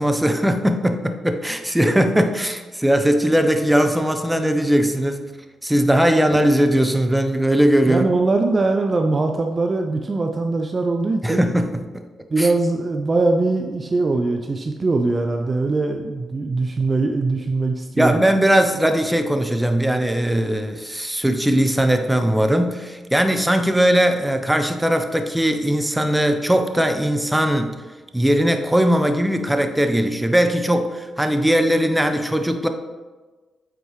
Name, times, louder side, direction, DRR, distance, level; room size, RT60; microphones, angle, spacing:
voice 1, 0.0-5.2 5.6-8.1 11.2-11.7 11.9-12.0 12.4-12.5 17.9-27.7 28.1-32.7, equal, 5° right, 7 dB, 0.7 m, -19 dB
voice 2, 7.9-11.5 12.3-18.3, right 3 dB, 40° right, 4 dB, 0.5 m, -21 dB
7.9 x 4.5 x 3.2 m, 1.3 s
supercardioid pair, 50°, 0 cm